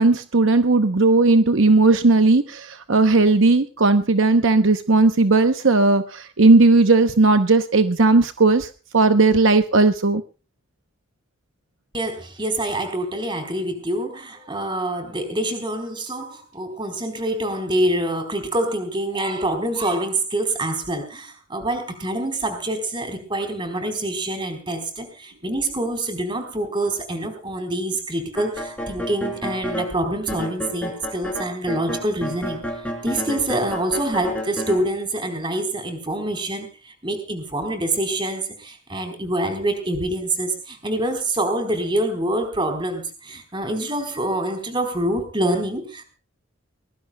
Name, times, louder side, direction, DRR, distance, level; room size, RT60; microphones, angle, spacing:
voice 1, 0.0-10.2, right 3 dB, 65° right, 9 dB, 0.8 m, -16 dB
voice 2, 11.9-32.6 33.0-46.1, right 1 dB, 25° right, 6 dB, 4.0 m, -26 dB
sound 1, 28.3-29.9 30.3-34.8, equal, 5° left, 4.8 m, -30 dB
23.0 x 21.0 x 2.3 m, 0.34 s
head